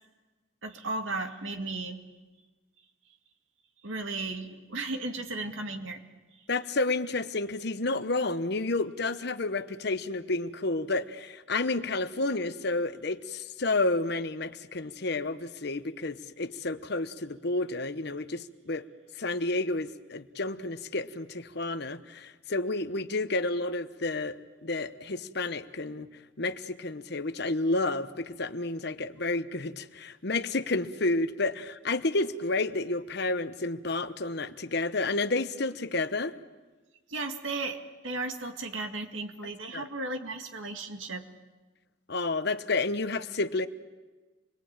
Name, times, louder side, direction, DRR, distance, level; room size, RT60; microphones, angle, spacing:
voice 1, 0.6-2.0 3.8-6.0 37.1-41.3, right 3 dB, 75° right, 5 dB, 2.1 m, -35 dB
voice 2, 6.5-18.9 19.2-26.1 26.4-36.3 39.7-39.8 42.1-43.7, left 2 dB, 55° left, 11 dB, 1.0 m, -30 dB
27.5 x 21.5 x 8.9 m, 1.2 s
head